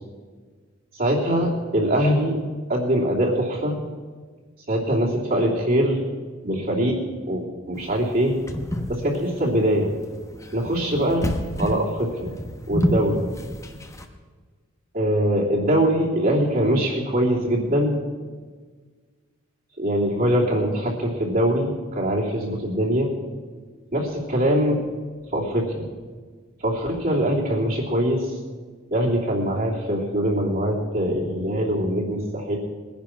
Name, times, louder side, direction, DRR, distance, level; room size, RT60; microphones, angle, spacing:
voice 1, 1.0-2.4 2.7-3.8 4.7-6.0 6.4-7.0 7.3-8.4 8.9-9.9 10.5-12.3 12.7-13.2 14.9-18.0 19.8-23.1 23.9-24.8 25.3-25.9 26.6-28.3 28.9-32.6, equal, 45° right, -5 dB, 3.0 m, -22 dB
sound 1, 7.8-14.1, equal, 15° left, 1.1 m, -29 dB
20.5 x 10.5 x 6.0 m, 1.5 s
head